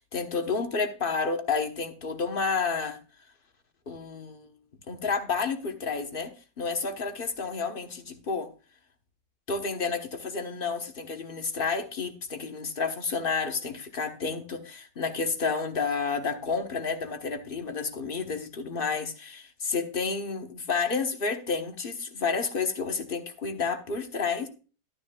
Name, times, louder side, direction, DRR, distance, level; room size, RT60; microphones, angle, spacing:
voice 1, 0.0-3.0 3.9-4.5 4.9-6.3 6.6-8.5 9.5-24.5, left 4 dB, 35° left, 6 dB, 1.2 m, -30 dB
12.0 x 9.9 x 2.3 m, 0.35 s
omnidirectional pair, 1.8 m